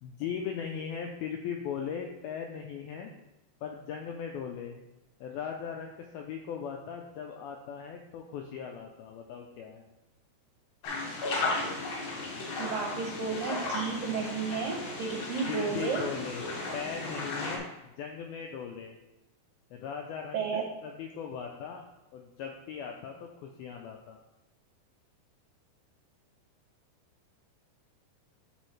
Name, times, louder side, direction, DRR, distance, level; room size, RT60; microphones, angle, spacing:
voice 1, 0.0-3.1 3.6-4.8 5.2-9.9 15.5-16.4 16.7-19.0 19.7-20.4 20.8-21.9 22.1-24.2, left 7 dB, 85° left, 2 dB, 2.1 m, -38 dB
sound 1, 10.8-17.6, left 2 dB, 65° left, 3.1 m, -35 dB
voice 2, 12.6-16.0 20.3-20.6, right 6 dB, 75° right, 0 dB, 2.1 m, -32 dB
12.0 x 4.1 x 3.2 m, 0.97 s
omnidirectional pair, 4.9 m